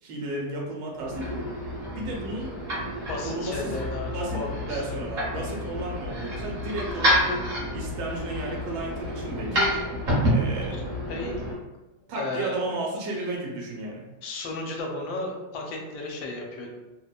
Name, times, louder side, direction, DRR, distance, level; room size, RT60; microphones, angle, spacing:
voice 1, 0.0-1.5 1.9-2.5 3.2-3.8 4.0-7.5 7.7-9.8 10.3-10.9 12.1-14.0, right 2 dB, 75° right, -1 dB, 1.2 m, -33 dB
sound 1, 1.0-11.5, equal, 45° right, 0.9 m, -29 dB
voice 2, 3.1-5.5 11.1-11.4 12.2-12.6 14.2-16.7, left 2 dB, 85° left, 1 dB, 1.3 m, -34 dB
3.1 x 2.1 x 2.2 m, 1.1 s
omnidirectional pair, 2.0 m